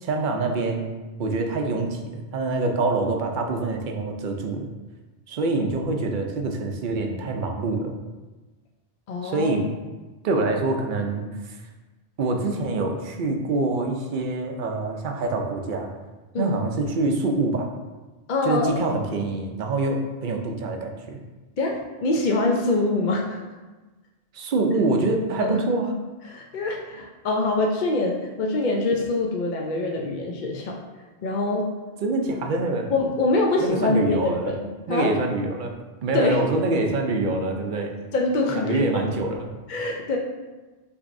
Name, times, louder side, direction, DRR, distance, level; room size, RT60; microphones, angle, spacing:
voice 1, 0.0-0.9 1.2-4.7 5.3-7.9 9.2-9.7 10.2-11.3 12.2-15.9 16.4-17.7 18.4-21.2 24.3-25.9 32.0-32.9 33.6-34.5 34.9-37.9 38.5-39.5, right 2 dB, 55° right, 3 dB, 0.6 m, -25 dB
voice 2, 9.1-9.6 16.3-16.6 18.3-18.8 21.6-23.4 25.4-25.6 26.3-30.8 31.2-31.7 32.9-34.6 34.9-35.1 36.1-36.4 38.1-39.0 39.7-40.2, left 2 dB, 55° left, 0 dB, 0.6 m, -24 dB
6.1 x 3.1 x 2.6 m, 1.2 s
omnidirectional pair, 1.1 m